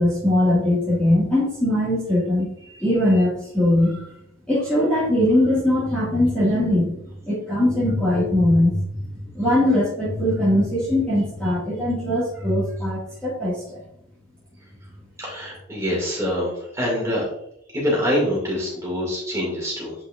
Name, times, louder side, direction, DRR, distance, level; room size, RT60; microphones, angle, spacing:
voice 1, 0.0-2.5 2.8-4.0 4.5-13.8, left 1 dB, 5° left, -9 dB, 1.8 m, -21 dB
voice 2, 15.2-17.3 17.7-19.9, equal, 15° right, -4 dB, 2.1 m, -25 dB
8.6 x 4.9 x 2.5 m, 0.76 s
head